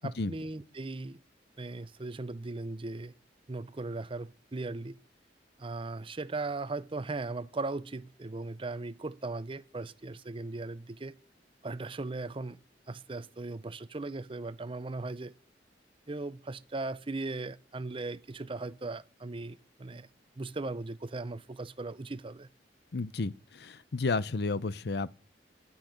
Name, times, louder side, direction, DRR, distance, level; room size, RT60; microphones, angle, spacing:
voice 1, 0.0-1.2 1.6-3.1 3.5-5.0 5.6-11.2 11.6-12.6 12.9-15.3 16.1-20.1 20.4-22.5, right 3 dB, 30° right, 0.6 m, -38 dB
voice 2, 22.9-25.1, left 3 dB, 65° left, 0.7 m, -32 dB
10.0 x 8.7 x 10.0 m
head